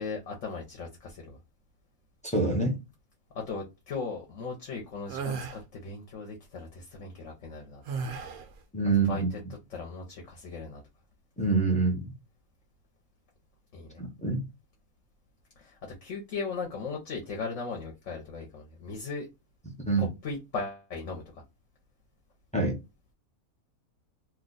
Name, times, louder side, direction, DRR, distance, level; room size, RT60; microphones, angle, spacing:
voice 1, 0.0-1.4 3.3-7.8 8.9-9.4 9.7-10.8 13.7-14.0 15.6-19.3 20.0-21.4, left 4 dB, 60° left, 1.0 m, -38 dB
voice 2, 2.2-2.8 8.7-9.3 11.4-12.1 14.0-14.4 19.9-20.1 22.5-22.8, right 3 dB, 10° left, 0.4 m, -26 dB
sound 1, 5.1-5.6 7.9-8.5, right 5 dB, 90° right, 1.1 m, -34 dB
2.8 x 2.2 x 3.8 m
omnidirectional pair, 1.5 m